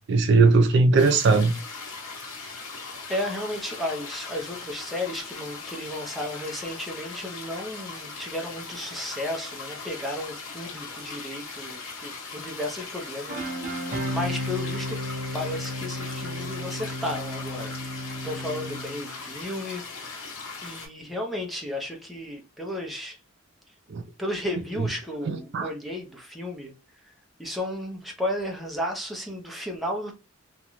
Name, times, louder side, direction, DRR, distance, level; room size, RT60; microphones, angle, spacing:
voice 1, 0.1-1.5 23.9-24.0 25.3-25.7, right 3 dB, 55° right, 0.3 m, -19 dB
sound 1, 0.9-20.9, left 4 dB, 80° left, 0.9 m, -39 dB
voice 2, 3.1-15.0 15.3-17.7 18.2-20.2 20.6-23.2 24.2-26.7 27.0-27.1 27.4-30.1, left 1 dB, ahead, 0.5 m, -33 dB
sound 2, 13.3-19.2, left 1 dB, 40° right, 0.7 m, -33 dB
2.4 x 2.1 x 2.9 m
head